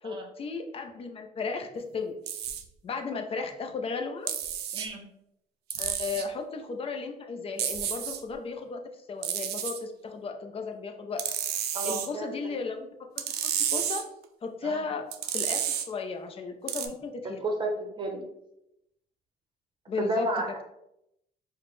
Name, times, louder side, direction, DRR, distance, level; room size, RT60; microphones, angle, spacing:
voice 1, 0.0-2.1 2.8-4.3 5.8-8.8 9.1-11.2 11.8-12.9 13.1-13.2 13.7-14.0 14.4-15.6 15.9-17.5 19.9-20.3, left 4 dB, 35° left, 5 dB, 0.6 m, -35 dB
sound 1, 2.3-2.6 4.3-4.9 5.7-6.3 7.6-8.2 9.2-9.8 11.2-12.1 13.2-14.0 15.1-15.9 16.7-16.9, right 9 dB, 75° right, 0.5 m, -31 dB
voice 2, 4.7-5.0 11.7-12.3 14.6-14.8 17.4-17.7 18.0-18.2 20.0-20.6, right 2 dB, 30° right, 2 dB, 0.8 m, -31 dB
4.8 x 2.1 x 3.1 m, 0.82 s
cardioid pair, 110°, 17 cm